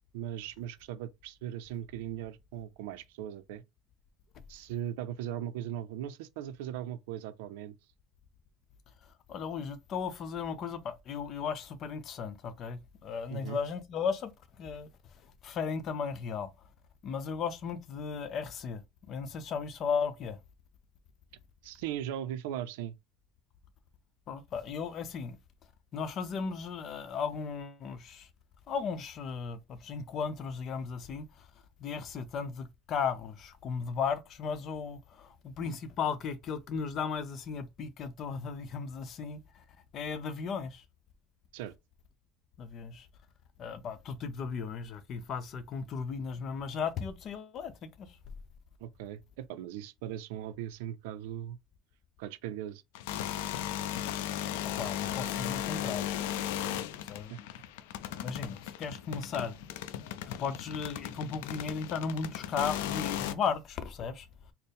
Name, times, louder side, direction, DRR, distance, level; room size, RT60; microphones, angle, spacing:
voice 1, 0.1-3.6 4.5-7.8 13.3-13.6 21.6-23.0 41.5-41.7 48.8-51.6 52.2-52.8 56.6-56.8 57.3-57.4, right 11 dB, 85° right, 0.4 m, -39 dB
voice 2, 9.0-14.3 14.6-14.9 15.2-16.5 17.0-18.8 19.1-20.4 24.3-25.4 25.9-28.3 28.7-31.5 31.8-39.6 39.9-40.8 42.6-43.1 43.6-48.2 54.8-56.1 57.1-57.5 58.2-59.6 60.3-64.3, left 6 dB, 45° left, 0.6 m, -36 dB
sound 1, 52.9-63.3, left 11 dB, 85° left, 0.4 m, -36 dB
4.3 x 2.0 x 3.4 m
supercardioid pair, 120°, 0 cm